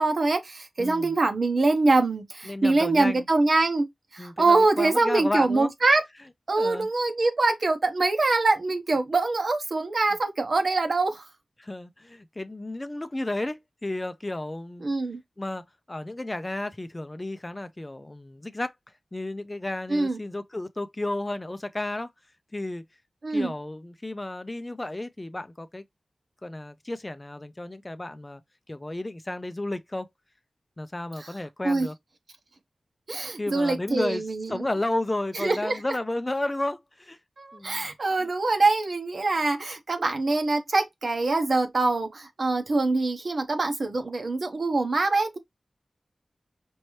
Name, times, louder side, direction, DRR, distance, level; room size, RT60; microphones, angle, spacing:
voice 1, 0.0-3.9 4.1-6.0 6.5-11.2 14.8-15.2 19.9-20.2 23.2-23.5 31.2-31.3 31.6-31.9 33.1-34.7 35.3-35.8 37.4-45.4, right 3 dB, 60° right, 1.1 m, -24 dB
voice 2, 0.8-1.2 2.5-3.3 4.2-5.7 6.6-6.9 11.6-14.9 15.4-18.7 19.1-22.1 22.5-22.8 23.3-25.8 26.4-28.4 28.7-30.1 30.8-31.9 33.4-34.2 34.5-37.2 37.5-37.9 38.2-38.3, left 2 dB, 25° left, 0.5 m, -32 dB
5.3 x 2.9 x 3.1 m
wide cardioid pair, 100°, 0 cm